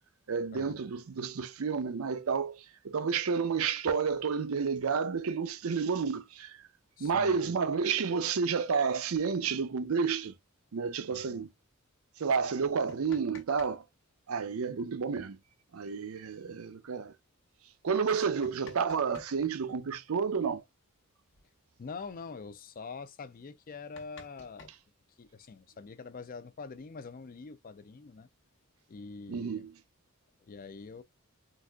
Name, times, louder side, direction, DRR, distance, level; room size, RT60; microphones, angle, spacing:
voice 1, 0.3-6.7 7.0-10.4 10.7-11.5 12.2-13.8 14.3-15.4 15.7-17.1 17.8-20.6 29.3-29.7, right 5 dB, 80° right, 0.5 m, -30 dB
voice 2, 7.0-7.6 11.1-11.5 16.4-16.6 21.8-24.7 25.2-28.3 28.9-29.7 30.5-31.0, left 4 dB, 40° left, 0.4 m, -45 dB
sound 1, 12.9-13.8 14.0-14.1 15.9-16.0 16.3-16.4 17.0-17.2 18.0-19.4 20.9-21.0 21.3-21.5 21.8-22.2 22.7-22.8 23.2-23.3 23.6-25.5 26.4-27.2, left 4 dB, 60° left, 1.0 m, -54 dB
3.9 x 2.5 x 2.3 m
head